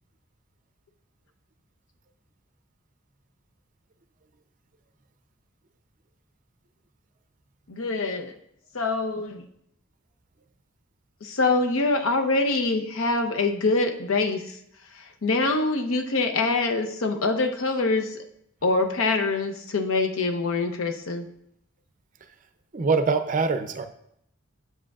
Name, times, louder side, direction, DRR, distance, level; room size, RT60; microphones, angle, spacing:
voice 1, 7.7-8.3 8.7-9.4 11.2-14.4 15.2-18.2 18.6-21.3, left 3 dB, 70° left, 6 dB, 0.7 m, -24 dB
voice 2, 22.7-23.9, right 4 dB, 40° right, 9 dB, 0.5 m, -23 dB
7.9 x 7.5 x 2.4 m, 0.74 s
head